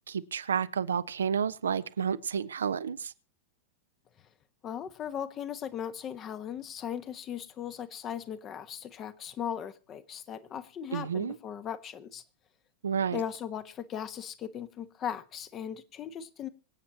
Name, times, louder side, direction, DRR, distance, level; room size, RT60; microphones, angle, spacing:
voice 1, 0.1-3.1 10.9-11.3 12.8-13.2, right 7 dB, 70° right, 0.8 m, -30 dB
voice 2, 4.6-12.2 13.1-16.5, left 9 dB, 30° left, 1.3 m, -38 dB
25.0 x 8.6 x 2.9 m
figure-of-eight pair, 90°, 0 cm